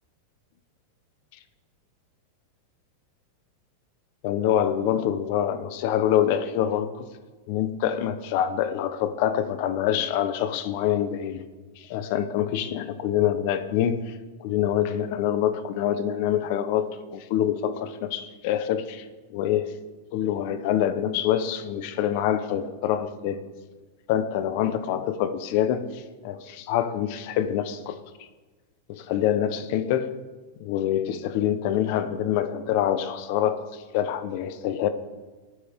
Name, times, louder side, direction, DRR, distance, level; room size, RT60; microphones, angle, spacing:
voice 1, 4.2-7.1 7.5-11.5 11.8-19.0 19.3-19.7 20.1-23.4 24.1-28.0 28.9-30.1 30.6-34.9, left 10 dB, 45° left, 11 dB, 1.0 m, -26 dB
27.5 x 9.4 x 3.7 m, 1.3 s
supercardioid pair, 165°, 0 cm